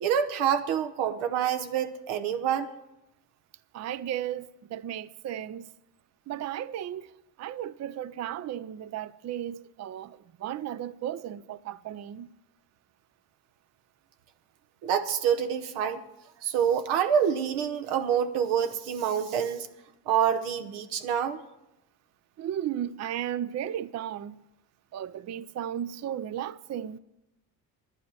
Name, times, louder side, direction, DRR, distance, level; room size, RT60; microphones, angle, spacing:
voice 1, 0.0-2.7 14.8-16.0 16.4-19.7 20.1-21.4, right 8 dB, 80° right, 1.0 m, -27 dB
voice 2, 3.7-5.7 6.3-7.1 7.4-12.3 22.4-24.4 24.9-27.0, right 10 dB, 35° right, 0.4 m, -35 dB
11.5 x 10.0 x 6.4 m
supercardioid pair, 60°, 48 cm